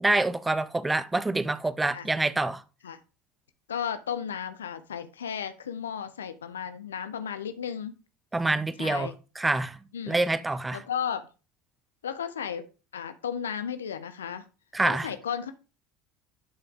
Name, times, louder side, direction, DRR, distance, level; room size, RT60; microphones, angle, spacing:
voice 1, 0.0-2.6 8.3-9.8 10.1-10.8 14.7-15.1, right 2 dB, 15° right, 0.8 m, -26 dB
voice 2, 3.7-7.9 8.8-9.1 9.9-10.2 10.7-11.2 12.0-12.6 12.9-14.4 14.8-15.5, left 8 dB, 90° left, 0.6 m, -34 dB
11.0 x 5.5 x 3.6 m
hypercardioid pair, 75°, 0 cm